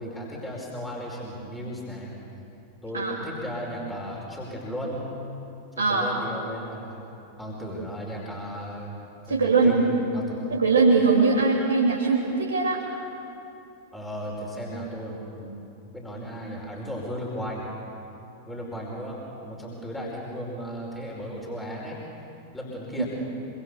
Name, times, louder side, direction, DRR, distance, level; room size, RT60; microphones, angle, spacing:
voice 1, 0.0-2.1 2.8-5.1 5.9-7.0 7.4-8.9 9.3-10.4 13.9-15.6 15.9-17.7 18.5-22.0 22.5-23.1, equal, 10° left, -3 dB, 5.1 m, -35 dB
voice 2, 5.8-6.1 9.3-9.8 10.5-12.8 23.0-23.1, right 4 dB, 75° right, -4 dB, 3.1 m, -21 dB
26.5 x 25.5 x 6.9 m, 2.8 s
figure-of-eight pair, 90°, 0 cm